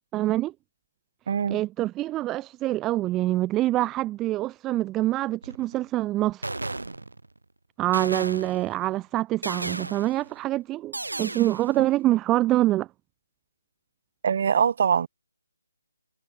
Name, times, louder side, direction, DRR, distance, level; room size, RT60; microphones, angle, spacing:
voice 1, 0.1-0.5 1.5-6.4 7.8-12.9, right 15 dB, 15° right, 0.8 m, -25 dB
voice 2, 1.3-1.6 11.8-11.9 14.2-15.1, right 7 dB, 45° right, 7.4 m, -23 dB
sound 1, 5.4-5.8 6.4-7.4 7.9-8.8 9.4-10.3 10.9-11.8, right 2 dB, 75° right, 4.0 m, -34 dB
figure-of-eight pair, 145°, 0 cm